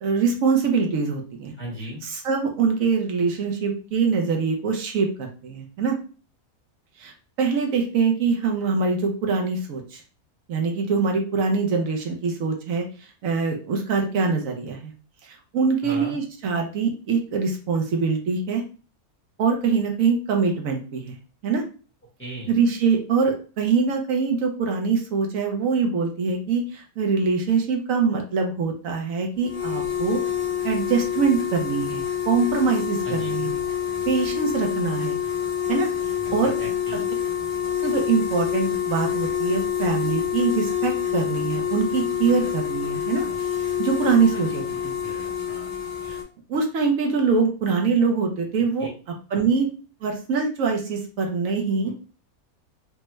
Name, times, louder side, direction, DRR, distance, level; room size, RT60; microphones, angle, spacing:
voice 1, 0.0-1.5 2.0-6.0 7.0-10.0 10.5-12.8 13.2-14.9 15.2-18.6 19.4-21.2 21.4-21.6 22.5-30.2 30.6-33.6 34.1-35.2 35.7-35.9 36.3-36.5 37.8-43.3 43.8-44.6 46.1-46.2 46.5-48.9 49.3-49.7 50.0-51.9, right 5 dB, 70° right, 2 dB, 1.0 m, -23 dB
voice 2, 1.6-2.0 15.8-16.2 22.2-22.5 33.0-33.6 36.4-37.1 44.3-44.6 48.6-48.9 49.3-49.4 51.8-51.9, right 1 dB, 10° left, -5 dB, 0.9 m, -37 dB
sound 1, 29.4-46.2, left 9 dB, 40° left, 1.1 m, -27 dB
3.4 x 2.0 x 3.0 m, 0.37 s
omnidirectional pair, 1.5 m